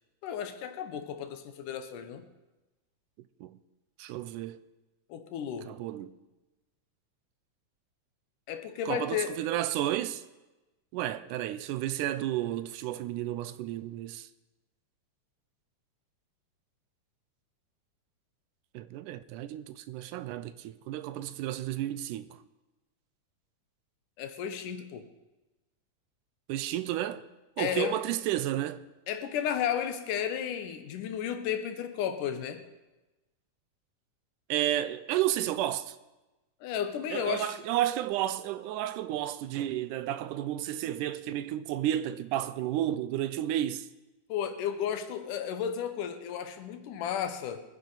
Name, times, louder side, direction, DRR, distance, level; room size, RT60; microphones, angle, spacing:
voice 1, 0.2-2.3 5.1-5.7 8.5-9.4 24.2-25.1 27.6-28.0 29.1-32.7 36.6-37.6 44.3-47.6, left 9 dB, 90° left, 2.6 m, -33 dB
voice 2, 4.0-4.6 5.7-6.1 8.9-10.2 10.9-14.3 18.7-22.3 26.5-27.2 27.6-28.8 34.5-36.0 37.1-43.9, right 13 dB, 90° right, 2.2 m, -32 dB
23.5 x 9.8 x 4.0 m
omnidirectional pair, 3.6 m